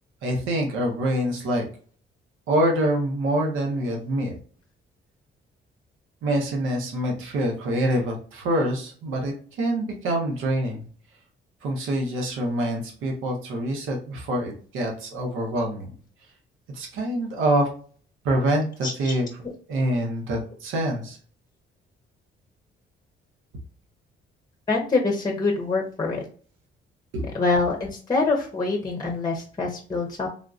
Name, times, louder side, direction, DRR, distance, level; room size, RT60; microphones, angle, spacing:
voice 1, 0.2-1.6 2.5-4.4 6.2-10.8 11.6-16.0 16.7-17.7 18.2-19.3 19.7-21.2 27.1-27.4, right 1 dB, 85° right, 1 dB, 0.9 m, -25 dB
voice 2, 18.8-19.1 24.7-26.2 27.3-30.3, left 3 dB, 20° left, 1 dB, 0.7 m, -25 dB
3.5 x 2.5 x 2.4 m, 0.43 s
cardioid pair, 90°, 20 cm